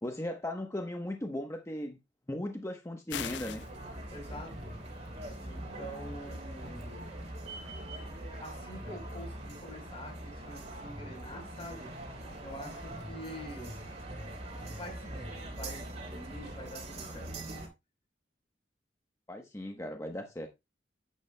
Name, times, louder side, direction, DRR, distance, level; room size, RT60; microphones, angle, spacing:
voice 1, 0.0-2.0 2.3-3.6 19.3-20.5, left 1 dB, 15° left, 1.0 m, -37 dB
sound 1, 3.1-3.7, left 10 dB, 70° left, 0.4 m, -38 dB
sound 2, 3.1-17.7, right 1 dB, 35° right, 3.8 m, -42 dB
voice 2, 4.1-4.8 5.4-7.0 7.6-7.7 8.4-11.9 12.4-13.9 14.6-17.3, equal, 30° left, 4.1 m, -46 dB
11.5 x 9.5 x 2.2 m
head